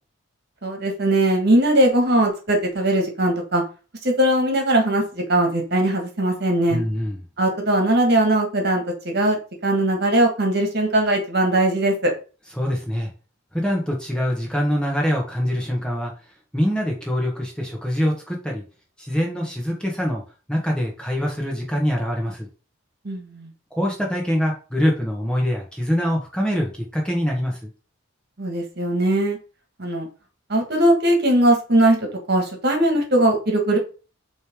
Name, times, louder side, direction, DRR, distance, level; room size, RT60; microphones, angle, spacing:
voice 1, 0.6-3.6 4.0-6.8 7.4-9.4 9.6-12.1 23.0-23.5 28.4-29.4 29.8-30.1 30.5-33.8, right 1 dB, 50° right, 2 dB, 1.8 m, -20 dB
voice 2, 6.7-7.2 12.6-13.1 13.5-16.1 16.5-18.6 19.0-20.2 20.5-22.5 23.7-27.6, equal, 5° left, -1 dB, 1.4 m, -24 dB
7.8 x 3.4 x 3.7 m, 0.34 s
head